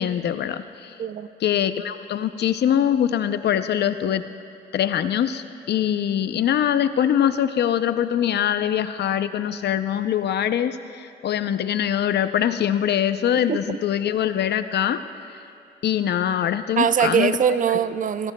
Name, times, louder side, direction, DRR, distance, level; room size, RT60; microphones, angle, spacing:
voice 1, 0.0-1.0 1.4-4.2 4.7-15.0 15.8-17.3, left 10 dB, 60° left, 11 dB, 0.5 m, -23 dB
voice 2, 16.8-18.3, right 8 dB, 40° right, 13 dB, 0.5 m, -22 dB
18.0 x 16.5 x 2.2 m, 2.8 s
cardioid pair, 90°, 20 cm